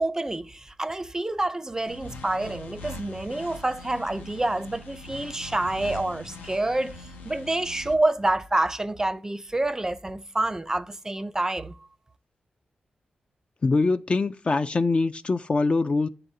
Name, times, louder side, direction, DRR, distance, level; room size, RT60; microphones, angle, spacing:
voice 1, 0.0-11.8, right 2 dB, 20° right, 0.5 m, -27 dB
sound 1, 1.9-7.9, left 2 dB, 90° left, 0.6 m, -42 dB
voice 2, 13.6-16.1, left 3 dB, 40° left, 0.3 m, -23 dB
9.0 x 3.8 x 2.7 m
cardioid pair, 60°, 3 cm